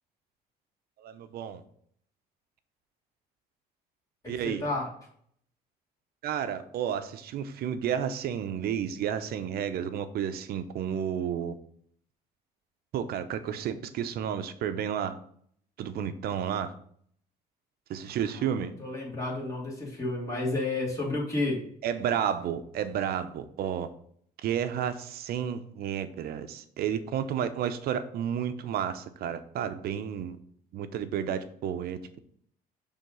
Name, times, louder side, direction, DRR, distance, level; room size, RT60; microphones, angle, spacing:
voice 1, 1.0-1.6 4.3-4.6 6.2-11.5 12.9-15.2 15.8-16.7 17.9-18.7 21.8-23.9 24.4-30.4 30.7-32.2, right 9 dB, 65° right, 11 dB, 0.7 m, -31 dB
voice 2, 4.2-4.9 18.1-21.6, left 2 dB, 20° left, -4 dB, 2.7 m, -32 dB
6.5 x 3.5 x 5.3 m, 0.63 s
cardioid pair, 110°, 17 cm